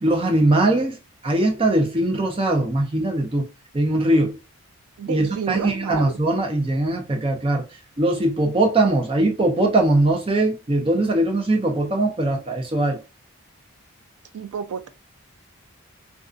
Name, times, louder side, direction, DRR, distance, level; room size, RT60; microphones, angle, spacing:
voice 1, 0.0-1.0 1.2-3.5 3.7-4.4 5.1-7.6 8.0-13.0, right 2 dB, 25° right, 0.5 m, -21 dB
voice 2, 5.0-6.2 14.3-14.9, right 7 dB, 80° right, 0.3 m, -30 dB
2.4 x 2.3 x 2.4 m
head